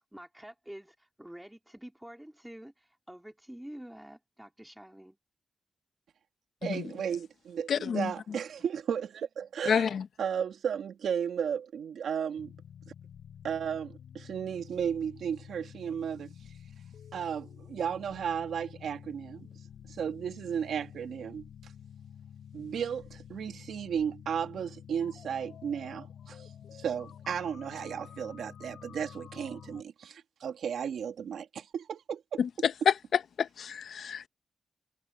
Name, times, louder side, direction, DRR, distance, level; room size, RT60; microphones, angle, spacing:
voice 1, 0.1-5.2, right 1 dB, 5° right, 3.3 m, -48 dB
voice 2, 6.6-9.9 10.2-12.5 13.4-16.3 17.1-19.5 19.9-21.7 22.5-32.7, right 8 dB, 80° right, 1.9 m, -34 dB
voice 3, 7.7-8.1 9.7-10.0 32.4-32.7 33.4-34.3, left 7 dB, 65° left, 0.8 m, -29 dB
sound 1, 12.4-29.8, left 8 dB, 80° left, 7.7 m, -50 dB
wide cardioid pair, 165°, 0 cm